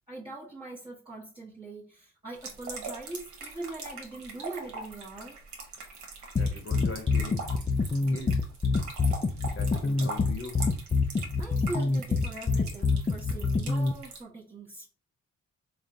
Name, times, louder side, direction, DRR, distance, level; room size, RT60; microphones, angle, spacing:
voice 1, 0.0-5.4 11.0-14.9, right 2 dB, 20° right, 1.1 m, -42 dB
sound 1, 2.4-14.2, right 4 dB, 80° right, 1.0 m, -42 dB
voice 2, 6.4-7.5 8.0-8.4 9.5-10.6, left 4 dB, 45° left, 0.9 m, -41 dB
sound 2, 6.4-13.9, left 4 dB, 20° left, 0.4 m, -26 dB
3.6 x 2.3 x 3.8 m
cardioid pair, 85°, 29 cm